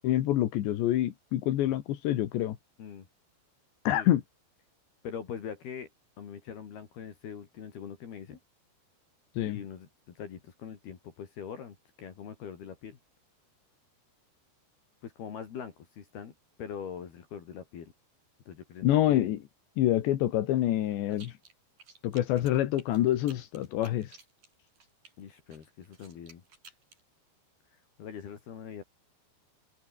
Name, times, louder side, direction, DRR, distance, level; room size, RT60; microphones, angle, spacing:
voice 1, 0.0-2.6 3.9-4.2 9.4-9.6 18.8-19.4 19.8-21.3 22.0-24.2, left 13 dB, 80° left, 3.9 m, -26 dB
voice 2, 5.0-5.9 6.2-8.4 9.5-13.0 15.0-16.3 16.6-17.9 18.5-19.3 25.2-26.4 27.7-28.8, left 7 dB, 65° left, 4.9 m, -42 dB
sound 1, 21.1-21.5 21.8-25.1 25.5-27.0, right 4 dB, 50° right, 7.4 m, -54 dB
omnidirectional pair, 5.0 m